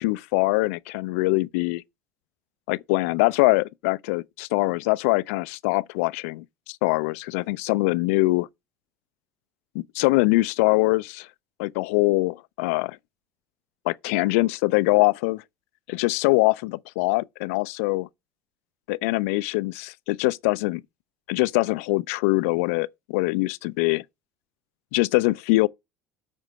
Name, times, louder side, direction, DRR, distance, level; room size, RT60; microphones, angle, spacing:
voice 1, 0.0-1.8 2.7-8.5 9.7-11.3 11.6-13.0 13.9-15.4 15.9-18.1 18.9-20.8 21.3-24.0 24.9-25.7, left 23 dB, 70° left, 0.4 m, -23 dB
7.5 x 4.4 x 6.3 m
hypercardioid pair, 70°, 8 cm